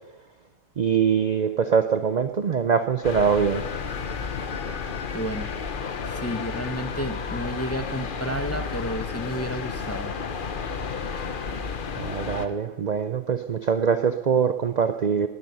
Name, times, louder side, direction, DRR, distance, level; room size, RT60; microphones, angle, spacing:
voice 1, 0.8-3.6 12.0-15.3, right 6 dB, 55° right, 10 dB, 0.4 m, -23 dB
sound 1, 3.0-12.5, left 5 dB, 45° left, 0.9 m, -32 dB
voice 2, 5.1-5.5 6.1-10.1, equal, 15° left, 8 dB, 0.5 m, -31 dB
19.0 x 12.5 x 5.5 m, 1.1 s
omnidirectional pair, 1.5 m